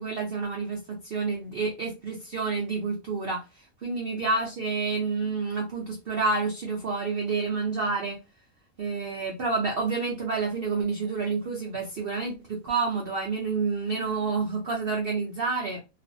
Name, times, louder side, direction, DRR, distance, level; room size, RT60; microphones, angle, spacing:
voice 1, 0.0-8.2 8.8-15.8, right 4 dB, 75° right, 0.5 m, -29 dB
2.5 x 2.4 x 2.5 m
omnidirectional pair, 1.7 m